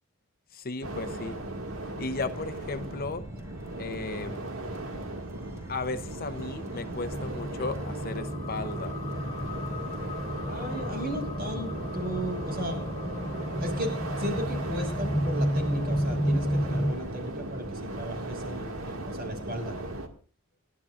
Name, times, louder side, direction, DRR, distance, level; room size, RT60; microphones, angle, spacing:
voice 1, 0.5-1.4 2.0-3.3 3.8-4.5 5.7-9.0, left 3 dB, 45° left, 0.8 m, -35 dB
sound 1, 0.8-20.1, right 2 dB, 75° right, 2.0 m, -37 dB
sound 2, 2.3-10.1, left 1 dB, 15° right, 4.9 m, -51 dB
sound 3, 6.9-16.9, equal, 25° left, 2.0 m, -31 dB
voice 2, 10.4-12.8 13.6-19.8, equal, 45° right, 5.5 m, -36 dB
29.5 x 12.0 x 2.5 m
head